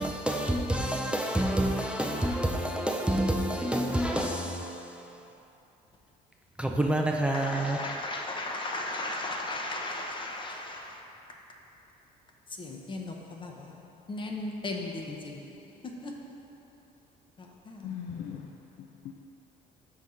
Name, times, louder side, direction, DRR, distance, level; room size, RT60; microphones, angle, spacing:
voice 1, 0.0-5.2 6.6-7.9, right 1 dB, 5° right, 0.4 m, -28 dB
voice 2, 7.3-11.0 12.6-13.7 14.1-15.6 16.0-16.1 17.4-17.9, left 2 dB, 30° left, 0.7 m, -36 dB
voice 3, 17.8-19.1, left 8 dB, 80° left, 0.5 m, -40 dB
5.6 x 4.1 x 4.9 m
cardioid pair, 110°, 17 cm